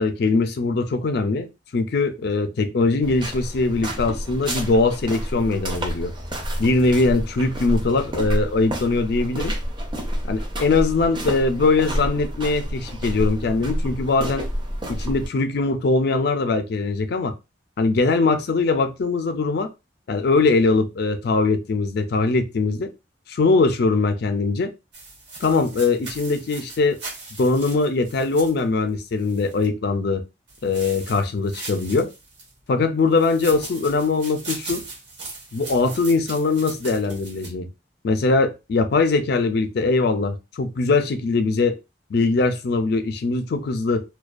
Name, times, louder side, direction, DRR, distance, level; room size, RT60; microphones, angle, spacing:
voice 1, 0.0-1.5 1.7-6.1 6.6-9.5 10.3-14.5 14.9-17.3 17.8-19.7 20.1-22.9 23.3-24.7 25.4-27.0 27.4-30.2 30.6-32.1 32.7-34.8 35.5-37.7 38.0-41.8 42.1-44.0, left 3 dB, 60° left, 0.4 m, -21 dB
sound 1, 3.0-15.3, equal, 25° right, 0.5 m, -29 dB
sound 2, 24.9-29.7 30.5-32.5 33.1-37.5, right 3 dB, 70° right, 1.1 m, -39 dB
2.3 x 2.2 x 2.4 m
head